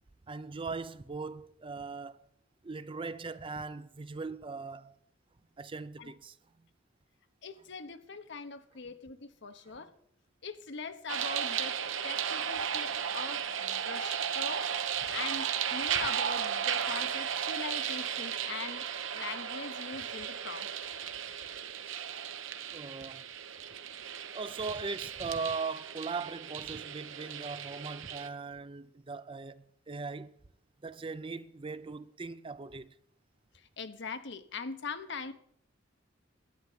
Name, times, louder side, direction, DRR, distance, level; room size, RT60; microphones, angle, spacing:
voice 1, 0.3-2.2 2.6-5.0 5.6-6.4 22.7-23.2 24.3-30.3 30.8-32.9, right 4 dB, 25° right, 0.5 m, -39 dB
voice 2, 7.4-9.9 10.4-11.8 12.0-14.7 15.1-18.9 19.1-20.7 33.5-35.3, left 4 dB, 65° left, 1.1 m, -42 dB
sound 1, 11.1-28.3, right 8 dB, 75° right, 1.0 m, -35 dB
11.5 x 9.6 x 7.4 m
head